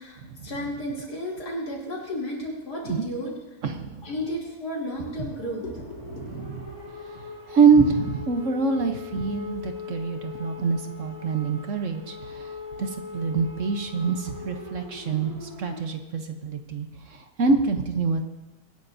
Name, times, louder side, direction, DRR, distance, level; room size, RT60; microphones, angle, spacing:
voice 1, 0.0-3.3 4.0-6.2, equal, 80° left, -4 dB, 3.5 m, -33 dB
voice 2, 3.6-4.1 6.1-6.7 7.5-12.5 12.8-18.2, right 5 dB, 55° right, 6 dB, 1.2 m, -25 dB
sound 1, 4.9-15.8, left 5 dB, 15° left, 4.6 m, -41 dB
Walk footsteps, 5.0-9.5, right 3 dB, 30° right, 1.5 m, -37 dB
24.0 x 10.5 x 2.7 m, 1.1 s
omnidirectional pair, 1.7 m